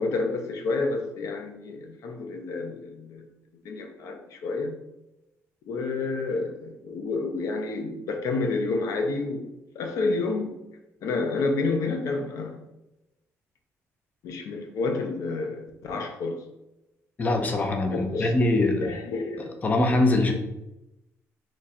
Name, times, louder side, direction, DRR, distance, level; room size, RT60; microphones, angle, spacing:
voice 1, 0.0-3.3 3.6-4.8 5.7-9.5 9.7-10.6 11.0-12.6 14.2-16.4 17.9-18.3 18.5-19.5, left 3 dB, 75° left, 4 dB, 0.5 m, -29 dB
voice 2, 17.2-18.9 19.6-20.3, left 2 dB, 30° left, 4 dB, 0.5 m, -23 dB
3.1 x 2.4 x 4.1 m, 0.92 s
cardioid pair, 120°, 6 cm